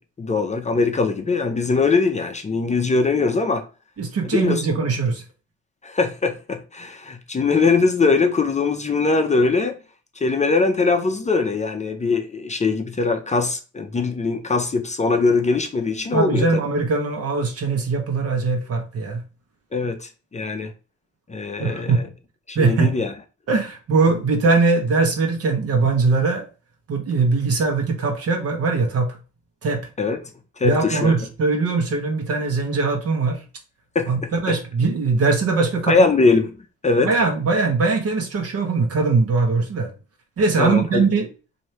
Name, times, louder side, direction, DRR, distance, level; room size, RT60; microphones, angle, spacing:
voice 1, 0.0-3.6 4.3-4.6 5.8-9.8 10.2-16.5 19.7-20.7 21.3-22.1 22.5-23.1 30.0-30.2 30.6-31.1 33.9-34.1 35.9-36.5 36.8-37.1 40.6-41.1, left 4 dB, 25° left, 0.6 m, -21 dB
voice 2, 4.0-5.2 16.1-19.2 21.6-22.0 22.5-22.9 23.5-26.5 26.9-29.2 29.6-29.9 30.6-33.4 34.1-36.1 37.0-39.9 40.4-41.3, right 4 dB, 50° right, 1.2 m, -21 dB
3.1 x 2.7 x 4.3 m
cardioid pair, 90°, 30 cm